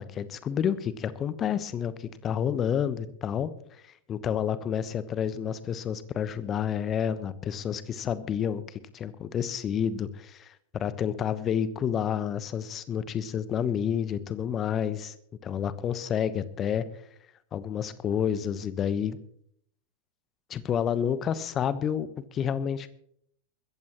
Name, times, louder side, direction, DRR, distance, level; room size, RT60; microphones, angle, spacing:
voice 1, 0.0-3.5 4.1-10.4 10.8-15.1 15.4-16.9 17.5-19.2 20.5-22.9, left 8 dB, 25° left, 15 dB, 1.0 m, -29 dB
21.5 x 15.0 x 3.0 m, 0.67 s
figure-of-eight pair, 90°, 0 cm